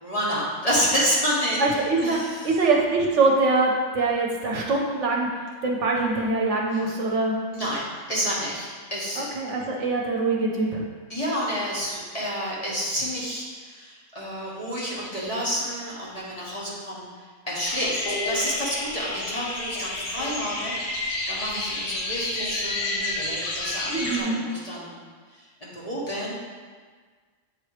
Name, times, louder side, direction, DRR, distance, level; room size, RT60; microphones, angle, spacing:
voice 1, 0.0-2.4 7.5-7.8 8.1-9.2 11.1-17.1 17.5-24.9 25.6-26.4, equal, 30° left, -7 dB, 1.4 m, -29 dB
voice 2, 1.6-2.2 2.4-7.4 9.2-10.8 23.9-24.4, right 3 dB, 65° right, -1 dB, 1.0 m, -23 dB
sound 1, 17.6-24.2, left 2 dB, 85° left, 1.4 m, -30 dB
7.9 x 3.1 x 4.8 m, 1.6 s
omnidirectional pair, 1.4 m